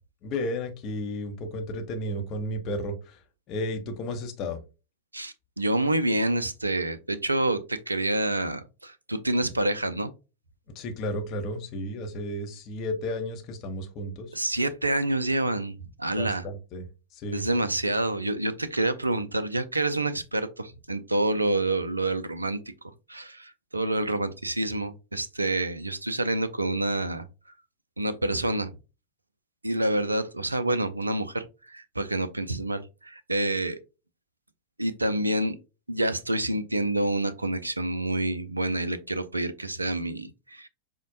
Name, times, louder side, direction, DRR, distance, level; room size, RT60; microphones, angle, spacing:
voice 1, 0.2-3.2 3.5-4.6 10.7-14.4 16.1-16.8 17.1-17.5, left 1 dB, 35° left, 5 dB, 0.7 m, -33 dB
voice 2, 5.1-10.1 14.3-16.4 17.3-22.6 23.1-27.3 28.0-28.7 29.6-33.8 34.8-35.6 35.9-40.7, right 1 dB, 85° right, 12 dB, 0.3 m, -28 dB
5.0 x 2.1 x 2.6 m, 0.30 s
figure-of-eight pair, 90°, 0 cm